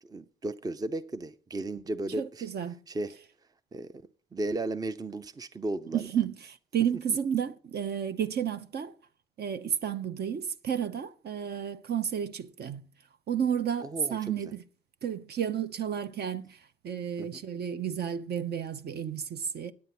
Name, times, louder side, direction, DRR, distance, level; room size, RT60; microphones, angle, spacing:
voice 1, 0.0-2.5 2.9-3.2 3.7-4.0 4.3-6.1 13.8-14.3 17.2-17.4, right 2 dB, 20° right, 0.5 m, -35 dB
voice 2, 2.2-2.8 5.9-8.9 9.4-12.9 13.3-14.6 15.0-19.7, right 8 dB, 55° right, 0.8 m, -32 dB
9.6 x 7.9 x 5.8 m
cardioid pair, 90°, 20 cm